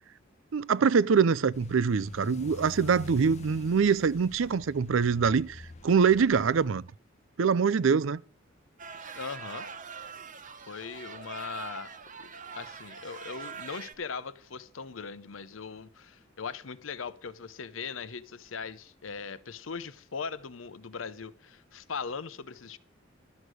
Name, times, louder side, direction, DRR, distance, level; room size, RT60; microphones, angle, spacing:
voice 1, 0.5-6.9 7.4-8.2, right 6 dB, 75° right, 0.5 m, -24 dB
sound 1, 1.5-6.7, left 3 dB, 35° left, 0.8 m, -46 dB
sound 2, 8.8-13.9, right 5 dB, 40° right, 1.0 m, -43 dB
voice 2, 9.1-9.7 10.7-11.9 12.2-22.8, left 5 dB, 80° left, 0.8 m, -39 dB
12.5 x 8.2 x 6.3 m
head